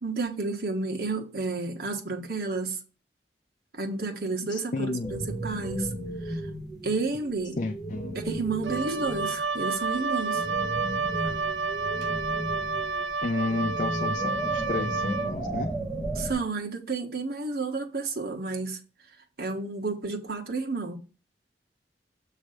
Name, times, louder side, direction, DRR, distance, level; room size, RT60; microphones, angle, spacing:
voice 1, 0.0-2.8 3.7-5.9 6.2-6.4 6.8-7.6 8.1-10.5 16.1-18.8 19.4-21.0, right 3 dB, 60° right, 1.4 m, -31 dB
voice 2, 4.5-5.2 7.6-8.2 13.2-15.7, left 3 dB, 45° left, 0.5 m, -32 dB
sound 1, 5.0-9.4 9.7-16.3, right 1 dB, ahead, 1.8 m, -35 dB
Wind instrument woodwind instrument, 8.6-15.3, right 4 dB, 85° right, 0.5 m, -30 dB
7.6 x 3.2 x 6.3 m
head